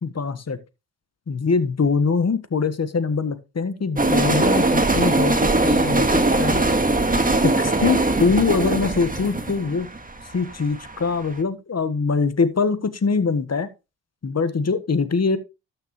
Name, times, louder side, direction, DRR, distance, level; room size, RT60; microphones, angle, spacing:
voice 1, 0.0-0.6 1.3-6.6 7.4-9.9 10.3-13.7 14.2-15.4, left 4 dB, 40° left, 12 dB, 1.5 m, -23 dB
sound 1, 4.0-11.0, right 2 dB, 20° right, 1.8 m, -20 dB
13.0 x 6.6 x 3.2 m, 0.28 s
supercardioid pair, 50°, 41 cm